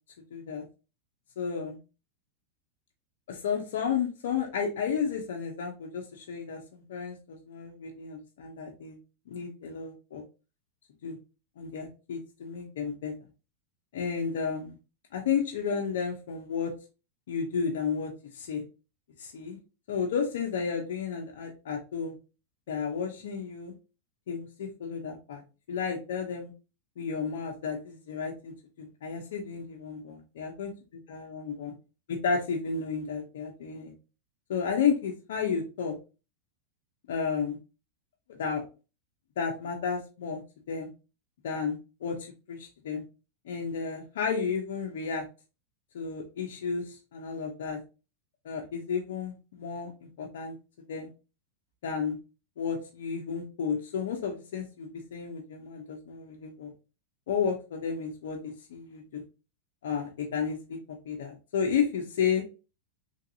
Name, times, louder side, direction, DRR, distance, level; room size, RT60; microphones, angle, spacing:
voice 1, 0.3-0.6 1.4-1.8 3.3-9.0 9.3-10.2 11.0-11.2 11.6-13.1 13.9-14.7 15.1-16.7 17.3-18.6 19.2-19.6 19.9-22.2 22.7-23.7 24.3-25.4 25.7-26.5 27.0-30.7 31.1-31.7 32.1-33.9 34.5-36.0 37.1-37.6 38.4-38.6 39.4-40.4 40.7-40.9 41.4-43.0 43.4-45.2 45.9-47.8 48.4-50.6 50.9-51.1 51.8-52.2 52.6-56.7 57.3-59.2 59.8-60.8 61.0-62.4, left 6 dB, 75° left, 1 dB, 0.7 m, -32 dB
3.3 x 2.6 x 2.6 m, 0.31 s
hypercardioid pair, 120°, 0 cm